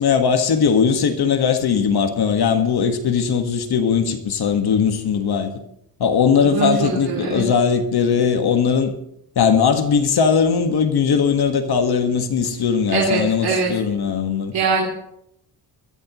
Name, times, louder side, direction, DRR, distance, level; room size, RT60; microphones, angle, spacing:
voice 1, 0.0-5.5 6.0-8.9 9.3-14.5, left 6 dB, 80° left, 1.7 m, -19 dB
voice 2, 6.4-7.4 12.9-13.7 14.5-14.9, right 5 dB, 75° right, 3.4 m, -22 dB
21.5 x 14.5 x 3.1 m
cardioid pair, 90°, 38 cm